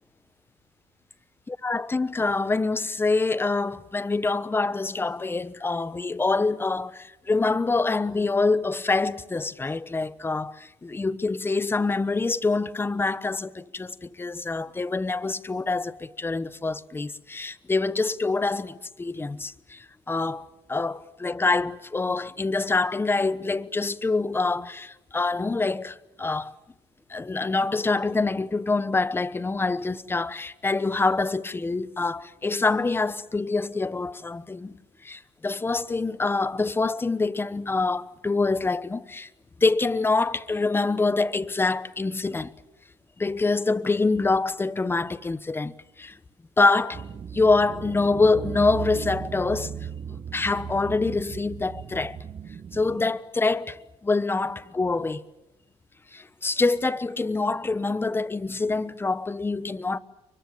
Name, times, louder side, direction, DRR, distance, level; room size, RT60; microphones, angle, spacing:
voice 1, 1.6-26.5 27.1-34.7 35.0-39.3 39.6-42.5 43.2-46.2 46.6-47.1 47.3-49.7 50.1-52.2 52.7-55.2 56.1-60.0, left 3 dB, 20° left, 1.1 m, -25 dB
sound 1, 46.9-53.0, right 8 dB, 40° right, 1.2 m, -37 dB
29.5 x 23.5 x 7.4 m
cardioid pair, 95°, 12 cm